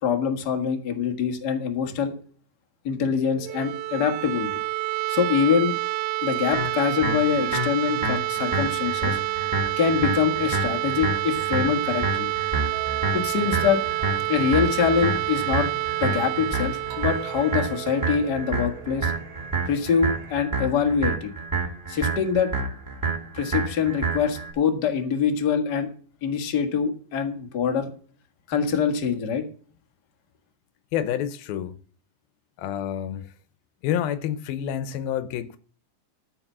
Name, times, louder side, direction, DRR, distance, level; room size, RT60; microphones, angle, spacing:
voice 1, 0.0-2.1 2.8-4.6 5.1-5.7 6.2-9.2 9.8-12.3 13.1-13.8 14.3-15.7 16.0-19.1 19.6-21.3 21.9-22.5 23.3-25.9 26.2-27.9 28.5-29.4, left 7 dB, 40° left, 1.5 m, -24 dB
sound 1, 3.4-19.1, right 19 dB, 85° right, 2.6 m, -29 dB
sound 2, 6.5-24.5, right 3 dB, 5° right, 2.5 m, -29 dB
Singing, 12.7-20.4, right 2 dB, 55° right, 2.7 m, -44 dB
voice 2, 30.9-31.8 32.6-33.3 33.8-35.6, left 10 dB, 85° left, 2.7 m, -28 dB
14.0 x 4.8 x 7.4 m
omnidirectional pair, 4.2 m